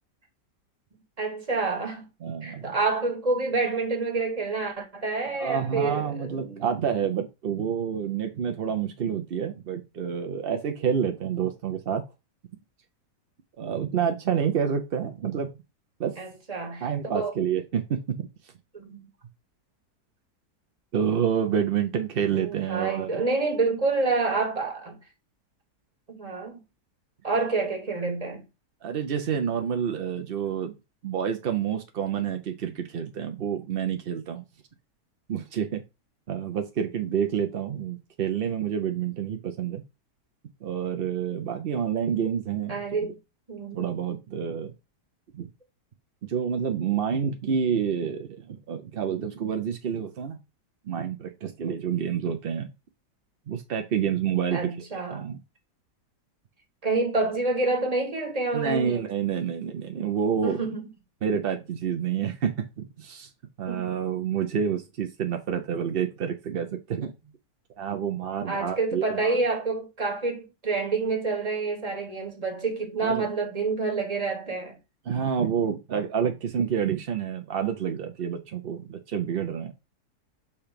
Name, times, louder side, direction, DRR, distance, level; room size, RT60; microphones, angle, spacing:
voice 1, 1.2-2.1 2.4-6.6 16.2-17.3 18.7-19.1 22.3-25.0 26.1-26.6 27.2-28.4 42.7-43.2 43.5-43.8 54.5-55.3 56.8-59.1 60.4-60.9 63.7-63.9 68.5-74.8, right 3 dB, 25° right, 1.6 m, -28 dB
voice 2, 2.2-2.7 5.3-12.0 13.6-15.5 16.0-16.1 16.8-18.3 20.9-23.2 28.8-30.7 31.0-34.4 35.3-35.8 36.3-39.8 40.6-43.1 43.7-44.7 45.3-45.5 46.2-50.4 50.9-52.7 53.5-54.6 55.1-55.4 58.5-60.6 61.2-63.3 63.6-67.1 67.8-69.4 73.0-73.3 75.1-79.7, right 8 dB, 65° right, 0.5 m, -28 dB
6.9 x 2.9 x 5.0 m
omnidirectional pair, 1.8 m